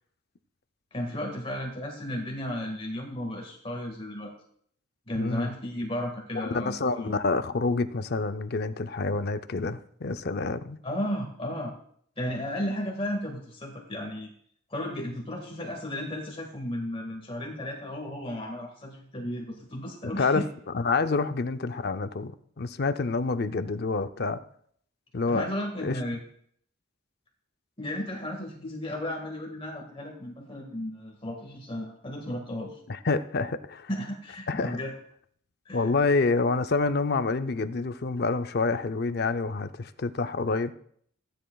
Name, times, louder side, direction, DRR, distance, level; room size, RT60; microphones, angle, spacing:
voice 1, 0.9-4.3 5.1-7.1 10.8-11.7 12.2-14.3 14.7-20.5 25.3-26.2 27.8-32.8 33.9-34.9 35.7-35.9, left 1 dB, 30° left, 0 dB, 1.7 m, -34 dB
voice 2, 5.2-5.5 6.4-10.8 20.2-20.5 20.7-22.3 22.6-24.4 25.1-25.5 25.8-26.0 33.0-33.9 34.5-34.8 35.7-40.7, left 3 dB, 50° left, 10 dB, 0.5 m, -27 dB
16.0 x 10.0 x 2.3 m, 0.63 s
head